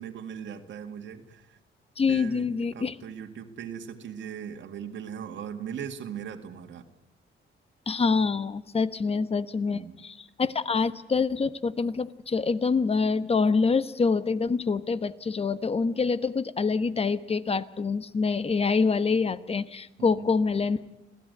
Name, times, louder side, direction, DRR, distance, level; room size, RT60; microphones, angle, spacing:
voice 1, 0.0-1.6 2.1-6.9 9.7-10.0 20.0-20.3, right 8 dB, 70° right, 5 dB, 2.0 m, -39 dB
voice 2, 2.0-2.9 7.9-20.8, left 4 dB, 30° left, 14 dB, 1.2 m, -26 dB
26.0 x 16.5 x 9.4 m, 0.93 s
cardioid pair, 90°, 20 cm